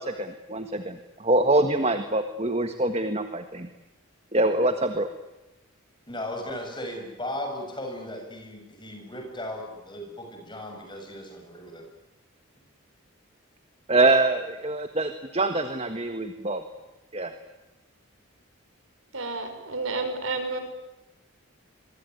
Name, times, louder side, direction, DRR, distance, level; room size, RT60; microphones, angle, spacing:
voice 1, 0.0-3.7 4.3-5.1 13.9-16.6 17.1-17.3, right 2 dB, 30° right, 8 dB, 1.6 m, -24 dB
voice 2, 6.1-11.9, left 1 dB, 20° left, 3 dB, 7.2 m, -36 dB
voice 3, 19.1-20.6, right 3 dB, 70° right, 8 dB, 5.3 m, -30 dB
26.0 x 23.5 x 9.4 m, 1.0 s
head